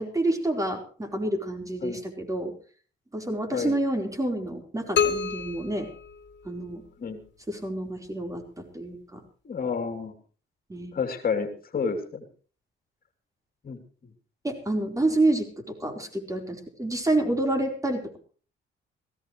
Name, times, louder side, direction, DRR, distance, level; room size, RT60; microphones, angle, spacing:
voice 1, 0.0-2.5 3.1-5.9 6.4-6.8 7.5-9.2 10.7-10.9 14.4-18.2, right 2 dB, 15° right, 4 dB, 4.4 m, -28 dB
sound 1, 5.0-6.9, left 7 dB, 60° left, 2.2 m, -28 dB
voice 2, 9.4-10.1 10.9-12.2 13.6-13.8, left 5 dB, 45° left, 6 dB, 3.2 m, -30 dB
19.5 x 16.5 x 3.2 m, 0.41 s
cardioid pair, 90°, 20 cm